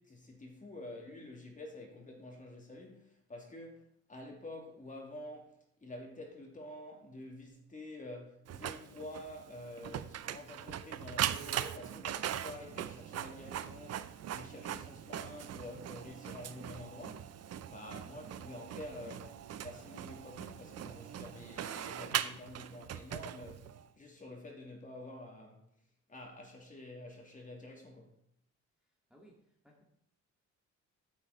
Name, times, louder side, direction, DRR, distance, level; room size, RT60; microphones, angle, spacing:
voice 1, 0.0-5.5 5.8-17.4 17.7-25.7 26.1-28.1, left 1 dB, 25° left, 2.7 m, -48 dB
Printer, 8.5-23.8, right 10 dB, 55° right, 0.6 m, -40 dB
voice 2, 28.8-29.8, equal, ahead, 2.1 m, -62 dB
9.6 x 7.9 x 4.1 m
cardioid pair, 90°, 30 cm